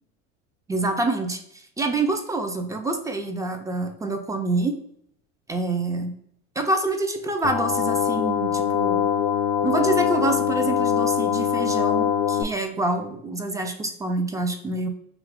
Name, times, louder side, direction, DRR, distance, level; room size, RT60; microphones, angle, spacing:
voice 1, 0.7-1.4 1.8-4.8 5.5-6.1 6.6-9.0 9.6-14.9, right 2 dB, 10° right, 4 dB, 0.3 m, -26 dB
sound 1, 7.4-12.4, left 8 dB, 65° left, 0.5 m, -23 dB
2.9 x 2.4 x 3.4 m, 0.69 s
hypercardioid pair, 90°, 36 cm